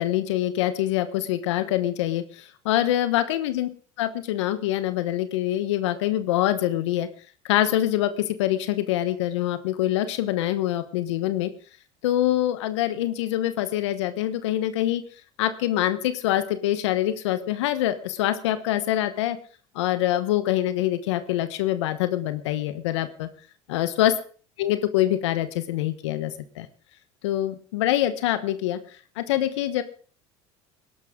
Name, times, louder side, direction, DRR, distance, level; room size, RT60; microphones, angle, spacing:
voice 1, 0.0-3.7 4.0-7.1 7.4-11.5 12.0-15.0 15.4-19.4 19.7-23.3 23.7-24.1 24.6-26.7 27.2-28.8 29.2-29.8, left 13 dB, 85° left, 11 dB, 1.1 m, -25 dB
20.0 x 11.5 x 3.7 m, 0.40 s
hypercardioid pair, 90°, 15 cm